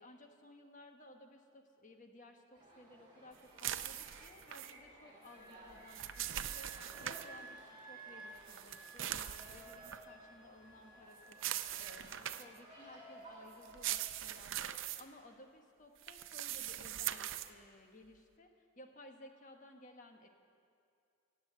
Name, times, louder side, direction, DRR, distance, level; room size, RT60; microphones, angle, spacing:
voice 1, 0.0-20.3, left 1 dB, 40° left, 4 dB, 1.1 m, -58 dB
sound 1, 2.5-14.0, right 1 dB, 25° right, 4.4 m, -57 dB
sound 2, 3.6-4.7 5.7-7.3 8.5-10.0 11.3-12.6 13.6-15.0 16.0-17.5, right 12 dB, 65° right, 0.5 m, -41 dB
Wind instrument woodwind instrument, 5.2-12.7, right 3 dB, 60° left, 2.2 m, -56 dB
16.5 x 8.0 x 7.7 m, 2.4 s
head